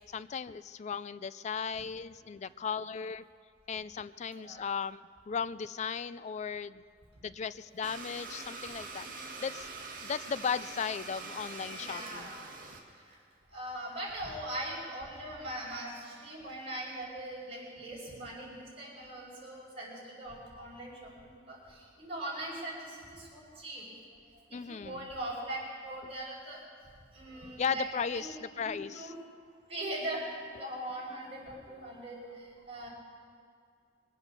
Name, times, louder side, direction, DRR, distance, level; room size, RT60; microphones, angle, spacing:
voice 1, 0.1-3.2 3.7-6.8 7.2-9.7 10.0-12.3 24.5-25.1 27.6-29.1, left 6 dB, 40° left, 16 dB, 0.3 m, -36 dB
voice 2, 4.3-4.6 11.7-12.5 12.9-13.2 13.5-23.9 24.3-26.6 27.1-29.1 29.7-32.9, right 1 dB, 35° right, -5 dB, 5.0 m, -41 dB
Domestic sounds home sounds, 7.8-12.8, right 3 dB, 50° right, 1.9 m, -44 dB
22.0 x 8.1 x 7.0 m, 2.3 s
head